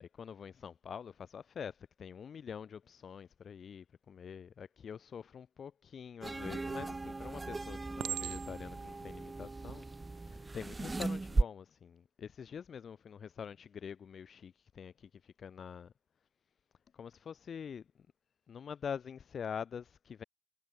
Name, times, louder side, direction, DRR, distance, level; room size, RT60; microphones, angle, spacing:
voice 1, 0.0-15.9 16.9-17.8 18.5-20.2, left 7 dB, 50° left, 2.1 m, -45 dB
sound 1, 6.2-11.4, right 3 dB, 20° right, 0.6 m, -37 dB
Chink clink, 6.5-7.0 8.0-8.8 9.5-9.8, right 12 dB, 90° right, 5.8 m, -40 dB
cardioid pair, 120°, 0 cm